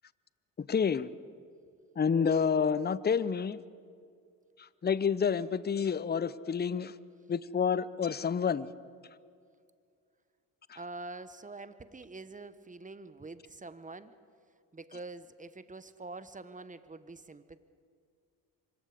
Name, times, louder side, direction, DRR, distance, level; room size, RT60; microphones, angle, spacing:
voice 1, 0.6-1.1 2.0-3.6 4.6-6.9 7.3-8.7, left 6 dB, 20° left, 18 dB, 0.7 m, -29 dB
voice 2, 10.7-14.1 14.7-17.6, right 3 dB, 15° right, 13 dB, 1.3 m, -45 dB
25.0 x 21.5 x 5.1 m, 2.3 s
hypercardioid pair, 50°, 44 cm